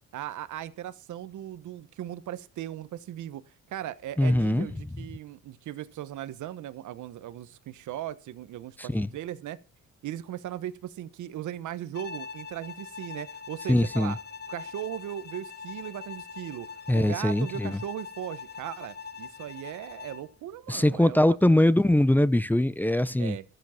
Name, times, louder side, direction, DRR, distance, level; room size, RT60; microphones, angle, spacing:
voice 1, 0.1-9.6 10.0-14.2 14.5-21.6 23.2-23.4, right 12 dB, 75° right, 1.1 m, -38 dB
voice 2, 4.2-4.7 8.8-9.1 13.7-14.2 16.9-17.8 20.7-23.4, left 1 dB, 5° left, 0.6 m, -22 dB
Bowed string instrument, 11.9-20.3, left 5 dB, 35° left, 0.9 m, -42 dB
13.5 x 7.8 x 7.1 m
cardioid pair, 90°, 30 cm